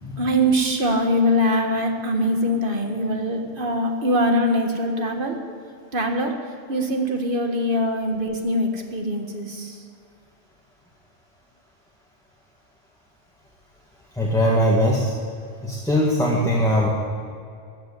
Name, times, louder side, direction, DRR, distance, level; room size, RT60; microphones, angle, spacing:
voice 1, 0.0-5.4 5.9-6.4 6.7-9.9, equal, 45° right, 3 dB, 1.8 m, -23 dB
voice 2, 14.2-15.1 15.6-16.9, equal, 5° left, -3 dB, 1.8 m, -20 dB
14.5 x 8.6 x 9.9 m, 2.4 s
omnidirectional pair, 1.3 m